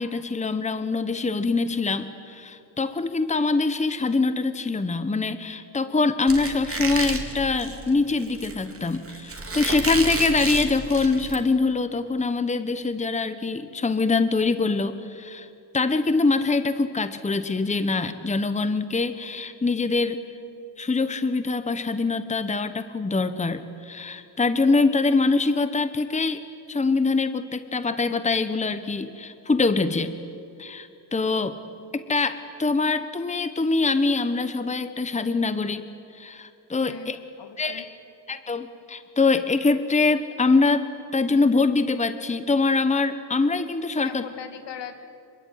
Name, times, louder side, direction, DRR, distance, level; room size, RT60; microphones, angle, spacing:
voice 1, 0.0-15.5 15.7-20.2 20.8-26.4 26.7-30.1 30.6-31.6 31.9-35.8 36.1-37.2 37.6-37.9 38.3-40.9 41.1-44.3, left 3 dB, 15° left, 11 dB, 1.1 m, -24 dB
Squeak, 6.3-11.4, right 3 dB, 30° right, 3.3 m, -31 dB
voice 2, 36.8-37.1 37.4-37.9 44.0-44.9, left 7 dB, 75° left, 7 dB, 2.5 m, -39 dB
26.5 x 23.5 x 9.5 m, 2.5 s
wide cardioid pair, 120°, 43 cm